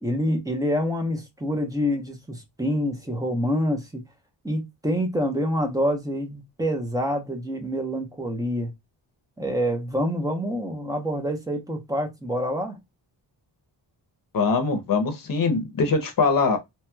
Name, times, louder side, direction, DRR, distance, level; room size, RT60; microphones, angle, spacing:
voice 1, 0.0-4.0 4.4-8.7 9.4-12.8, equal, 10° right, 0.8 m, -26 dB
voice 2, 14.3-16.6, left 4 dB, 50° left, 0.8 m, -22 dB
3.0 x 2.9 x 2.2 m
wide cardioid pair, 140°, 44 cm